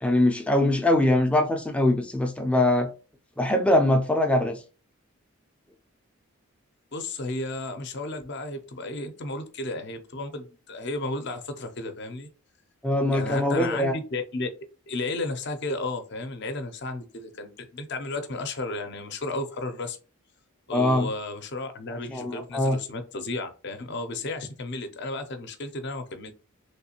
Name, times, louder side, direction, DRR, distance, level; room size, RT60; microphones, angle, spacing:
voice 1, 0.0-2.9 3.4-4.6 12.8-13.9 20.7-21.1 22.1-22.8, left 1 dB, 5° left, 0.4 m, -22 dB
voice 2, 6.9-12.3 13.1-14.5 14.9-20.0 20.7-26.3, left 2 dB, 50° left, 0.6 m, -33 dB
3.2 x 3.1 x 2.9 m
head